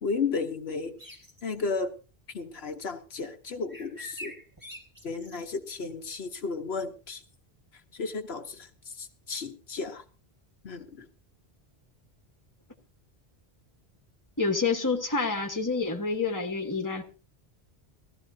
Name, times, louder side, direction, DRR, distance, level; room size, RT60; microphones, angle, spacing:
voice 1, 0.0-1.0 1.4-1.9 2.3-4.3 5.0-7.2 7.9-8.7 9.0-10.0 10.6-11.1, left 4 dB, 75° left, 6 dB, 1.3 m, -33 dB
sound 1, 1.0-1.6 3.7-5.5, left 1 dB, 20° right, 1.6 m, -45 dB
voice 2, 14.4-17.0, left 4 dB, 20° left, 4 dB, 1.3 m, -28 dB
19.0 x 14.5 x 2.7 m, 0.34 s
omnidirectional pair, 1.1 m